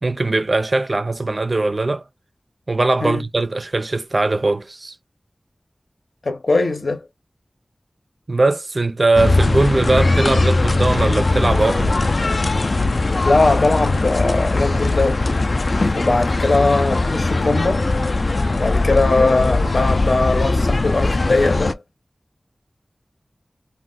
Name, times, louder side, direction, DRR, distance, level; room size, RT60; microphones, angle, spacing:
voice 1, 0.0-2.0 2.7-4.9 8.3-12.0 15.7-15.8, right 2 dB, 55° right, 0.3 m, -20 dB
voice 2, 6.2-7.0 13.2-15.2 15.9-17.9 18.6-21.8, left 3 dB, 80° left, 0.7 m, -20 dB
sound 1, 9.2-21.7, left 2 dB, 65° left, 0.3 m, -19 dB
2.4 x 2.1 x 3.8 m
wide cardioid pair, 60°, 0 cm